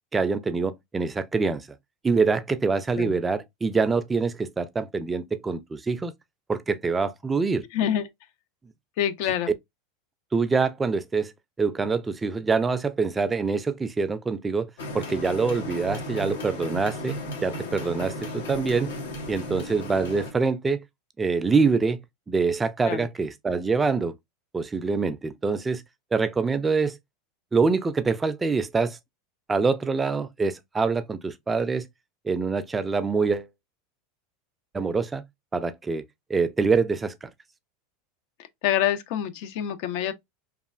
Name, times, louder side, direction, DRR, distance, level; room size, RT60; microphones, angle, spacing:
voice 1, 0.1-1.7 2.0-6.1 6.5-7.6 10.3-11.3 11.6-18.9 19.3-20.8 21.2-22.0 22.3-24.1 24.5-25.8 26.1-27.0 27.5-29.0 29.5-31.9 32.2-33.5 34.7-35.2 35.5-36.0 36.3-37.3, right 4 dB, 20° right, 0.4 m, -25 dB
voice 2, 7.7-8.0 9.0-9.5 22.9-23.0 38.6-40.1, left 10 dB, 65° left, 0.4 m, -26 dB
sound 1, 14.8-20.3, left 1 dB, 80° left, 1.0 m, -35 dB
3.0 x 2.4 x 2.4 m
hypercardioid pair, 100°, 0 cm